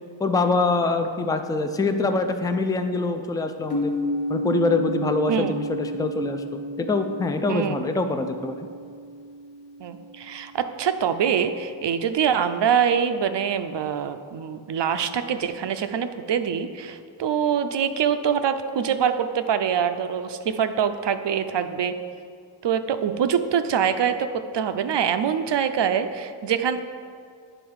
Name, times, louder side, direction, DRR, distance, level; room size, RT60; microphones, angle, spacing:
voice 1, 0.2-3.9 4.3-8.7, left 3 dB, 10° left, 7 dB, 0.3 m, -24 dB
sound 1, 3.7-11.5, equal, 50° left, 1.2 m, -32 dB
voice 2, 9.8-21.9 22.6-24.3 24.5-26.8, right 8 dB, 60° right, 10 dB, 0.5 m, -24 dB
8.9 x 3.9 x 4.7 m, 2.2 s
wide cardioid pair, 70°, 48 cm